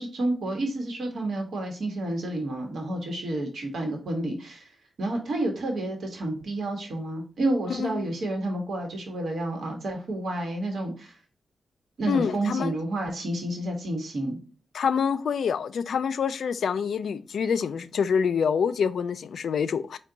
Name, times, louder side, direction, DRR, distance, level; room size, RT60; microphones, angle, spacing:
voice 1, 0.0-11.2 12.0-14.4, right 1 dB, 75° right, 1.0 m, -30 dB
voice 2, 7.7-8.1 12.1-12.7 14.7-20.0, left 6 dB, 85° left, 0.3 m, -26 dB
4.5 x 2.2 x 3.7 m
wide cardioid pair, 115°, 0 cm